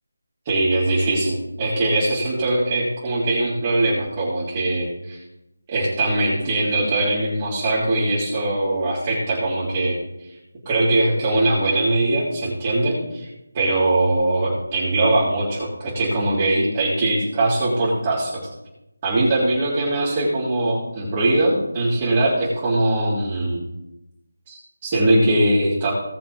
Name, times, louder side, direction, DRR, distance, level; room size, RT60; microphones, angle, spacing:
voice 1, 0.5-5.2 5.7-10.0 10.7-13.3 13.5-18.4 19.0-23.6 24.5-25.9, right 2 dB, 25° right, -8 dB, 3.6 m, -21 dB
18.5 x 6.7 x 3.7 m, 0.92 s
figure-of-eight pair, 165°, 0 cm